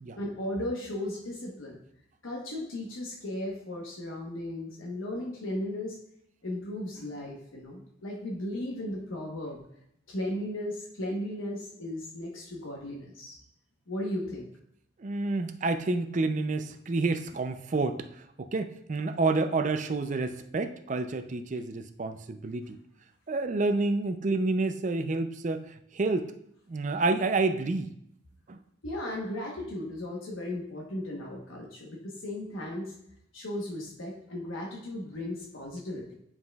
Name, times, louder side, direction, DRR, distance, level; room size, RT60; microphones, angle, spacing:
voice 1, 0.1-1.8 2.2-6.0 6.4-9.6 10.1-13.4 13.9-14.5 28.8-32.9 33.3-36.1, left 1 dB, 85° left, -2 dB, 1.1 m, -36 dB
voice 2, 15.0-18.1 18.4-22.8 23.3-26.3 26.7-27.9 28.5-28.6, right 3 dB, 40° right, 8 dB, 0.4 m, -29 dB
9.8 x 5.6 x 2.3 m, 0.73 s
head